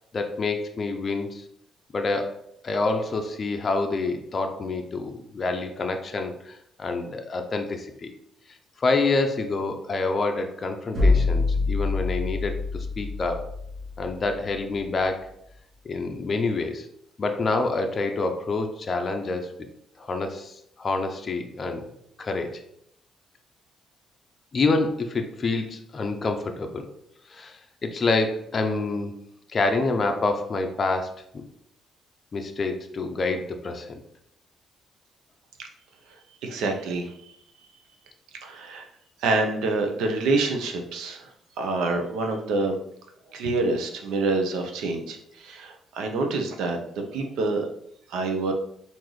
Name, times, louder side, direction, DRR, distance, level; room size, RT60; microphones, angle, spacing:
voice 1, 0.1-1.4 1.9-2.4 2.6-8.1 8.8-13.4 14.0-15.3 15.9-16.8 17.2-19.5 20.0-21.8 22.2-22.5 24.5-26.9 27.3-27.5 27.8-29.1 29.5-31.4 32.3-34.0, left 3 dB, 40° left, 4 dB, 0.5 m, -27 dB
sound 1, 10.9-14.8, left 3 dB, 55° right, 1.0 m, -25 dB
voice 2, 36.4-37.1 38.4-38.9 39.2-41.3 41.6-42.8 43.3-47.7 48.1-48.5, right 3 dB, 85° right, 4 dB, 0.6 m, -27 dB
3.8 x 2.5 x 3.1 m, 0.72 s
cardioid pair, 90°, 0 cm